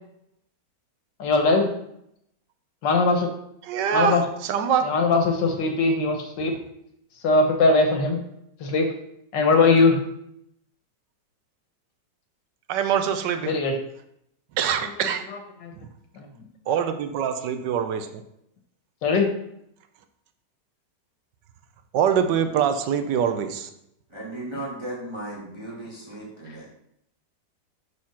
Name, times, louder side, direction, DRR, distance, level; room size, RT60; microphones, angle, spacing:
voice 1, 1.2-1.7 2.8-3.3 3.9-4.2 4.8-6.6 7.2-8.2 8.6-8.9 9.3-10.0 13.5-13.8 14.8-15.7 16.1-16.5 19.0-19.3, left 3 dB, 90° left, 4 dB, 1.8 m, -21 dB
voice 2, 3.7-4.9 12.7-13.5 14.6-15.2 16.7-18.2 21.9-23.7, right 8 dB, 90° right, 9 dB, 1.4 m, -24 dB
voice 3, 24.1-26.7, right 1 dB, 15° right, -4 dB, 1.5 m, -36 dB
6.4 x 4.2 x 5.7 m, 0.76 s
omnidirectional pair, 1.8 m